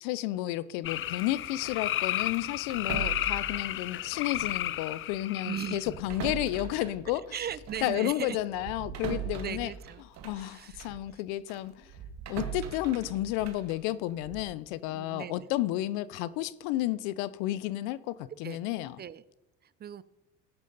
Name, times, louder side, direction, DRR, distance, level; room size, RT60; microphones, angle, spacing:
voice 1, 0.0-7.3 7.8-9.7 10.2-11.9 12.3-19.0, left 15 dB, 75° left, 0.7 m, -32 dB
sound 1, 0.8-6.0, left 13 dB, 40° left, 0.5 m, -33 dB
sound 2, 2.7-4.7 5.0-5.2 5.8-11.0 11.5-14.5, right 8 dB, 55° right, 1.9 m, -41 dB
voice 2, 5.4-5.9 7.3-8.4 9.4-10.0 10.3-10.9 14.8-15.5 18.4-18.6 19.0-19.2 19.6-20.0, right 9 dB, 30° right, 0.5 m, -38 dB
14.5 x 11.0 x 4.0 m
supercardioid pair, 90°, 32 cm